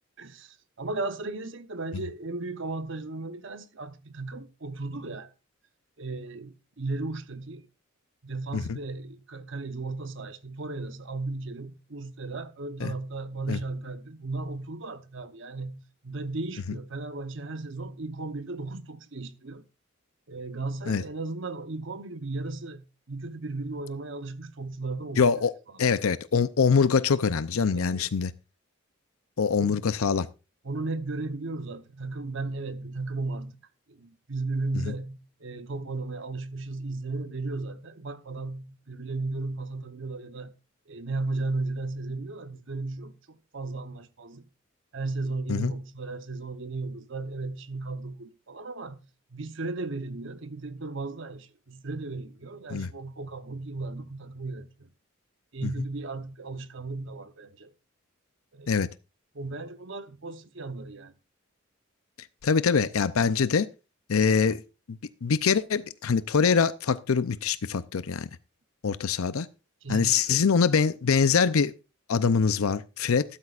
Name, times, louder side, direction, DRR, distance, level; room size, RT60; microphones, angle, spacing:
voice 1, 0.2-5.3 6.0-7.7 8.2-19.7 20.3-25.3 25.7-25.9 27.7-28.1 29.5-29.8 30.6-33.6 33.9-40.5 40.9-44.5 44.9-49.0 49.3-54.9 55.5-57.7 58.5-58.8 59.3-61.1 69.8-70.5, right 3 dB, 60° right, 0.9 m, -35 dB
voice 2, 25.2-25.5 25.8-28.3 29.4-30.3 45.5-45.7 52.7-52.9 55.6-55.7 58.7-58.9 62.4-63.7 64.1-64.6 64.9-68.3 68.8-69.5 69.9-71.7 72.1-73.2, left 5 dB, 90° left, 0.6 m, -24 dB
14.0 x 12.5 x 2.5 m
head